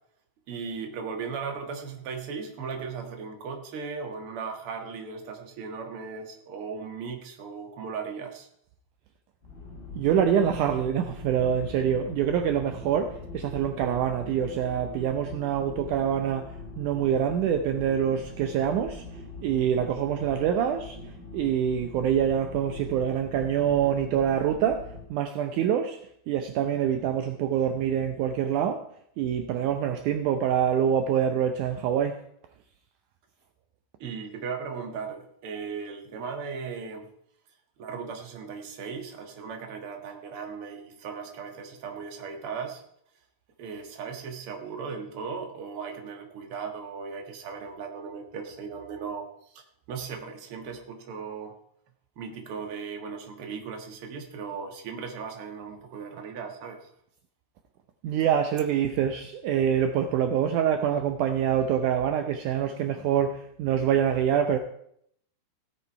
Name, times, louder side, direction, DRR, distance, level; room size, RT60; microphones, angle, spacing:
voice 1, 0.5-8.5 34.0-37.1 37.8-42.8 43.6-49.3 49.5-51.6 52.2-56.9, right 5 dB, 50° right, 1.8 m, -37 dB
sound 1, 9.4-25.1, left 3 dB, 30° left, 3.5 m, -43 dB
voice 2, 9.9-21.0 21.3-26.0 26.3-28.9 29.2-32.2 58.0-64.6, right 9 dB, 80° right, 1.8 m, -25 dB
16.0 x 8.1 x 4.7 m
omnidirectional pair, 4.5 m